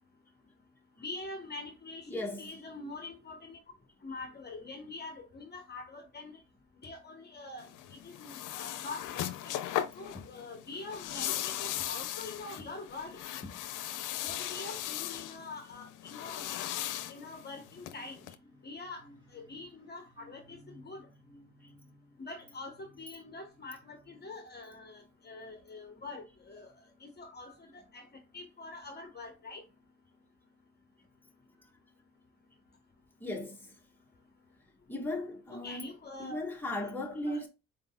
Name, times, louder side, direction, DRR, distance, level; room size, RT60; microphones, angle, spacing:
voice 1, 1.0-3.6 4.0-6.4 6.8-9.6 9.9-13.2 14.2-16.4 17.1-18.2 18.6-19.1 19.3-21.1 22.2-26.7 27.0-29.6 35.5-36.5 36.8-36.9 37.3-37.5, left 3 dB, 35° left, 1.1 m, -45 dB
voice 2, 2.1-2.7 4.1-4.2 8.6-8.8 14.5-15.0 17.8-17.9 21.6-21.7 33.2-33.7 34.9-35.9 36.2-37.5, left 1 dB, 5° left, 1.4 m, -38 dB
sound 1, 7.6-18.3, left 12 dB, 85° left, 0.6 m, -38 dB
sound 2, 17.6-24.3, equal, 15° right, 2.4 m, -60 dB
4.5 x 3.8 x 2.2 m
cardioid pair, 90°, 30 cm